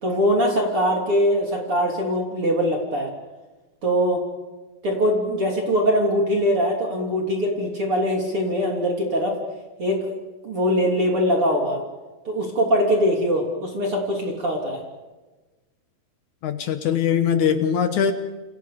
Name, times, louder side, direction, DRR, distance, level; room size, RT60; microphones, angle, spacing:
voice 1, 0.0-3.1 3.8-4.2 4.8-9.4 9.8-10.0 10.4-11.8 12.3-14.8, equal, 35° right, 0 dB, 3.8 m, -22 dB
voice 2, 16.4-18.1, left 7 dB, 65° left, 8 dB, 2.0 m, -21 dB
29.0 x 29.0 x 5.2 m, 1.2 s
omnidirectional pair, 4.8 m